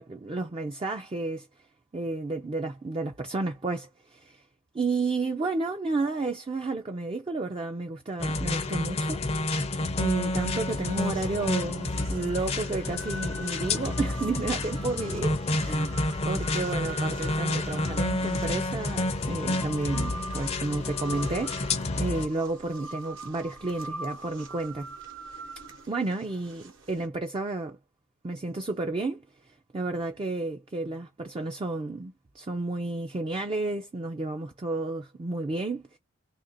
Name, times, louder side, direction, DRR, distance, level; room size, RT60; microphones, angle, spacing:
voice 1, 0.0-1.5 1.9-4.4 4.7-9.2 10.0-21.7 21.9-24.9 25.9-27.8 28.2-29.2 29.7-36.0, right 3 dB, 25° right, 0.4 m, -31 dB
sound 1, 8.2-22.3, left 2 dB, 30° left, 0.5 m, -29 dB
sound 2, 10.7-27.1, right 2 dB, 65° right, 1.0 m, -43 dB
2.9 x 2.5 x 4.0 m
head